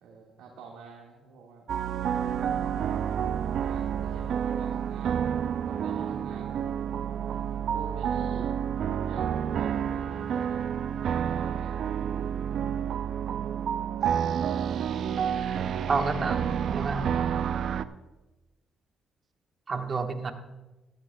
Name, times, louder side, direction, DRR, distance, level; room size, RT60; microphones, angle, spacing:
voice 1, 0.0-1.6 3.6-5.4 5.6-6.6 7.7-8.5 9.0-11.7, right 4 dB, 85° right, -1 dB, 1.6 m, -46 dB
sound 1, 1.7-17.8, right 8 dB, 65° right, 0.4 m, -29 dB
voice 2, 15.9-17.0 19.7-20.3, right 4 dB, 40° right, 5 dB, 1.2 m, -29 dB
15.0 x 13.0 x 2.2 m, 1.1 s
cardioid pair, 80°, 0 cm